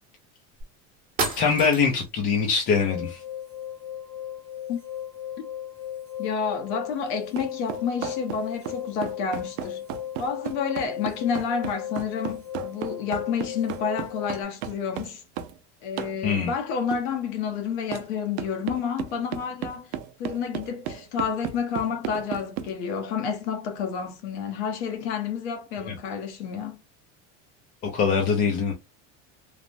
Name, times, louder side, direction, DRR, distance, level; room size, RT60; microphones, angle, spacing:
sound 1, 0.6-0.7 1.2-2.1, right 3 dB, 25° right, 0.9 m, -30 dB
voice 1, 1.4-3.2 16.2-16.5 27.9-28.7, left 5 dB, 30° left, 0.4 m, -23 dB
sound 2, 2.7-14.4, left 10 dB, 5° left, 0.8 m, -37 dB
voice 2, 6.2-9.8 10.2-15.2 15.8-19.9 20.2-26.8, left 6 dB, 80° left, 0.9 m, -30 dB
sound 3, 7.4-15.6 16.0-16.2 16.9-17.1 17.9-18.1 18.4-22.7, right 10 dB, 80° right, 0.6 m, -34 dB
3.2 x 2.0 x 2.6 m
cardioid pair, 165°, 33 cm